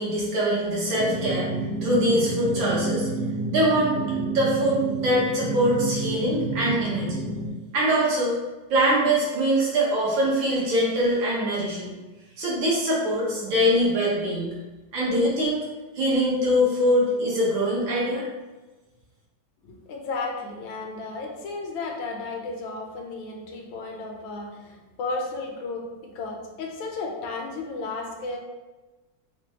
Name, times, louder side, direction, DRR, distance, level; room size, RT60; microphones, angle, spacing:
voice 1, 0.0-1.5 1.8-3.1 3.5-7.2 7.7-8.4 8.7-11.9 12.4-14.6 14.9-15.6 15.9-18.2, equal, 75° right, -6 dB, 1.9 m, -23 dB
sound 1, 1.0-7.5, right 3 dB, 90° right, 1.4 m, -29 dB
voice 2, 19.6-28.4, left 3 dB, 80° left, 0 dB, 1.4 m, -33 dB
5.1 x 2.2 x 2.8 m, 1.2 s
omnidirectional pair, 2.2 m